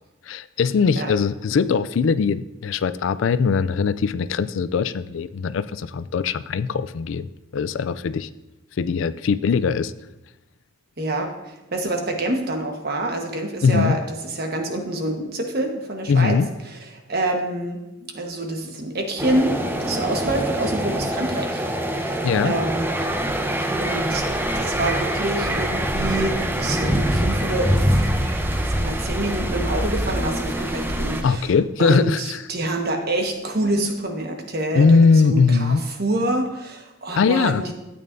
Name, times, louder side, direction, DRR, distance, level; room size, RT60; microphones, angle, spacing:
voice 1, 0.3-7.3 7.5-8.3 8.8-9.9 13.6-14.0 16.1-16.5 22.2-22.6 31.2-32.4 34.7-35.8 37.1-37.6, left 5 dB, 70° left, 14 dB, 0.4 m, -20 dB
voice 2, 11.0-16.4 16.6-17.8 18.1-21.6 21.9-23.0 23.8-24.2 24.5-31.5 31.8-35.0 35.2-37.7, right 1 dB, 50° right, 3 dB, 1.3 m, -27 dB
sound 1, 19.2-31.2, right 1 dB, 10° right, 0.6 m, -24 dB
12.5 x 8.6 x 2.6 m, 1.0 s
head